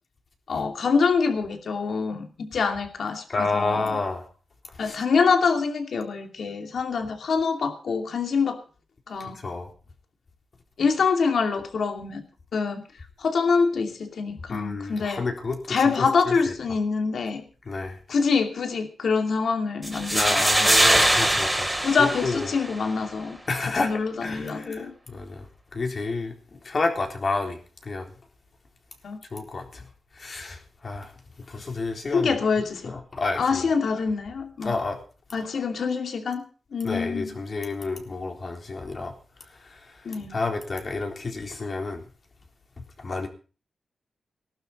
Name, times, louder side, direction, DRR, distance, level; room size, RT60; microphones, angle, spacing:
voice 1, 0.5-4.0 4.8-8.6 9.1-9.4 10.8-12.2 12.5-12.8 13.2-15.2 15.7-17.4 18.1-20.7 21.8-23.4 23.8-24.9 29.0-29.2 32.1-32.9 33.3-34.7 35.3-36.4 36.7-37.3 40.0-40.4, left 5 dB, 70° left, 6 dB, 2.6 m, -25 dB
voice 2, 3.3-4.3 4.8-5.0 9.2-9.7 14.5-16.5 17.7-18.0 20.1-21.7 22.0-22.5 23.5-25.5 25.7-28.1 29.3-29.8 30.2-31.1 31.5-32.4 32.8-33.7 34.6-35.0 36.8-39.1 39.6-40.0 40.3-42.0 43.0-43.3, left 3 dB, 45° left, 3 dB, 3.9 m, -30 dB
sound 1, 19.8-22.8, right 1 dB, 5° right, 3.2 m, -22 dB
19.5 x 12.0 x 4.2 m, 0.36 s
wide cardioid pair, 115°, 0 cm